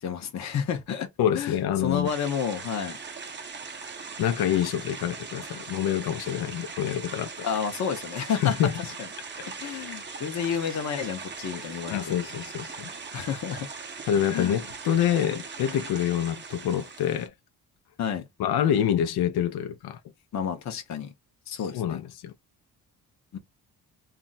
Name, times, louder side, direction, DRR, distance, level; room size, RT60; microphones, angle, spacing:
voice 1, 0.0-1.1 1.3-1.6 1.8-3.0 7.4-8.6 9.0-9.1 9.4-12.2 13.1-13.7 14.3-14.6 18.0-18.2 20.3-21.1 21.5-22.0 23.3-23.4, left 7 dB, 50° left, 0.7 m, -30 dB
voice 2, 1.2-2.1 4.2-7.5 8.4-8.7 11.9-12.9 14.1-17.3 18.4-20.0 21.7-22.3, left 10 dB, 90° left, 0.6 m, -26 dB
sound 1, 2.0-17.3, right 5 dB, 30° right, 0.6 m, -40 dB
2.4 x 2.0 x 3.9 m
cardioid pair, 130°, 37 cm